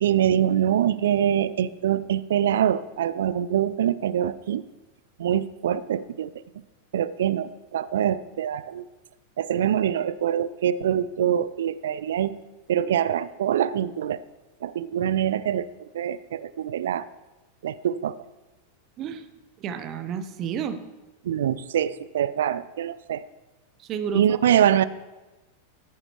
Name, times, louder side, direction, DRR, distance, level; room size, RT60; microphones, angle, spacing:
voice 1, 0.0-4.6 5.2-6.3 6.9-8.8 9.4-12.3 12.7-14.2 14.6-15.7 15.9-17.1 17.6-18.2 21.2-23.2 24.1-24.8, right 10 dB, 60° right, 18 dB, 0.4 m, -24 dB
voice 2, 19.6-20.8 23.8-24.4, right 7 dB, 35° right, 10 dB, 1.0 m, -31 dB
14.0 x 10.5 x 3.2 m, 1.1 s
figure-of-eight pair, 90°, 0 cm